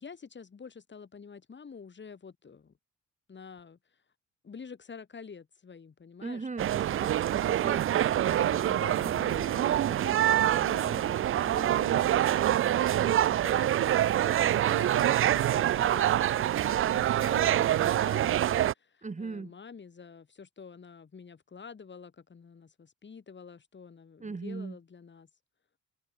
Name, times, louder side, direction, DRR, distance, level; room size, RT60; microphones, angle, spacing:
voice 1, 0.0-2.7 3.3-3.8 4.4-6.5 8.2-25.3, left 5 dB, 35° left, 4.4 m, -47 dB
voice 2, 6.2-8.9 19.0-19.5 24.2-24.8, right 4 dB, 25° right, 2.0 m, -40 dB
sound 1, 6.6-18.7, right 12 dB, 45° right, 0.4 m, -26 dB
sound 2, 7.7-13.4, right 1 dB, 5° right, 2.4 m, -51 dB
cardioid pair, 90°, 30 cm